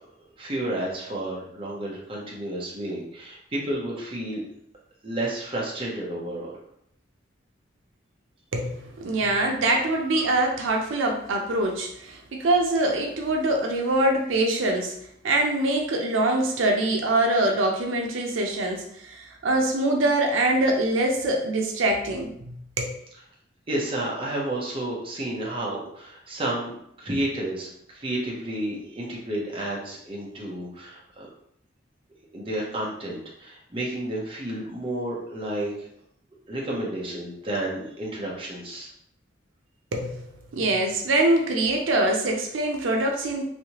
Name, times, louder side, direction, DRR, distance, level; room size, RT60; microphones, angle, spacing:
voice 1, 0.4-4.4 5.0-6.5 23.7-26.7 27.0-31.3 32.3-35.9 36.5-38.9, right 1 dB, 30° right, -4 dB, 0.8 m, -31 dB
voice 2, 8.5-14.9 15.2-22.9 39.9-40.3 40.5-43.4, right 2 dB, 85° right, 2 dB, 0.5 m, -24 dB
3.2 x 2.7 x 2.9 m, 0.71 s
head